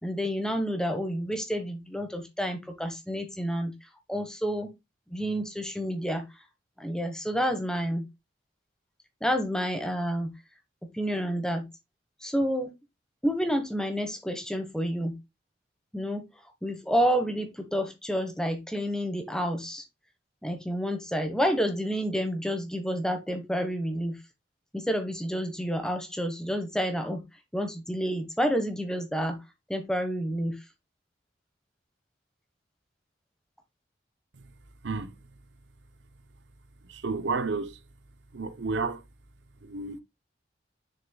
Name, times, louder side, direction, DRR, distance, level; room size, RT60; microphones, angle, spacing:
voice 1, 0.0-3.7 4.1-4.7 5.1-6.2 6.8-8.0 9.2-10.3 10.9-11.6 12.2-12.7 13.2-15.1 15.9-16.2 16.6-19.8 20.4-24.2 24.7-27.2 27.5-29.4 29.7-30.6, equal, 5° left, 1.3 m, -29 dB
voice 2, 34.8-35.1 36.9-37.8 38.3-39.0 39.6-40.0, right 4 dB, 80° right, 0.8 m, -31 dB
6.6 x 6.6 x 2.3 m
head